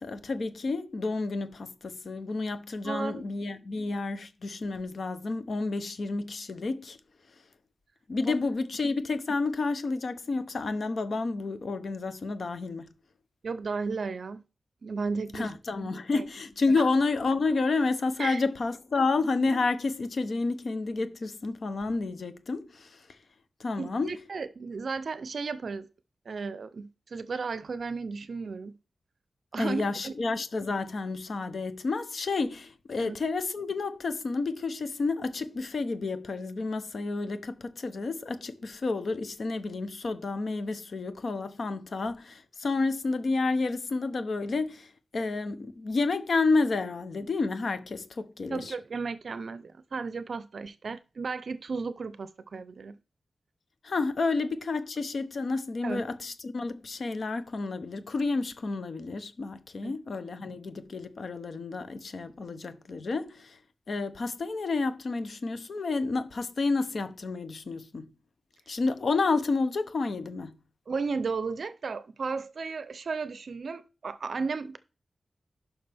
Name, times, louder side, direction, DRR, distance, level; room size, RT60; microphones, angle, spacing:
voice 1, 0.0-7.0 8.1-12.9 15.3-23.2 23.6-24.1 29.6-48.8 53.8-63.6 63.9-68.1 68.7-70.6, left 3 dB, 55° left, 0.8 m, -30 dB
voice 2, 2.8-3.3 8.3-8.4 13.4-14.4 14.8-15.5 15.8-16.2 16.8-16.9 18.2-18.4 23.8-25.9 26.3-28.8 29.5-30.1 33.0-33.2 48.5-53.0 55.8-56.0 59.8-59.9 70.9-74.8, right 4 dB, 60° right, 0.5 m, -34 dB
11.0 x 5.8 x 3.4 m
wide cardioid pair, 165°, 0 cm